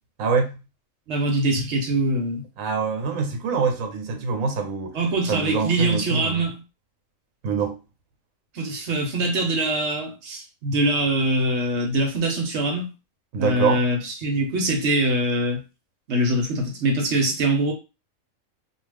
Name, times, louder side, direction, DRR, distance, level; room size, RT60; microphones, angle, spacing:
voice 1, 0.2-0.5 2.6-5.0 5.3-6.4 7.4-7.8 13.3-13.9, right 5 dB, 85° right, 1.1 m, -25 dB
voice 2, 1.1-2.4 4.9-6.6 8.5-12.9 13.4-15.6 16.1-17.7, right 1 dB, 60° right, 1.0 m, -23 dB
2.4 x 2.4 x 3.3 m
omnidirectional pair, 1.4 m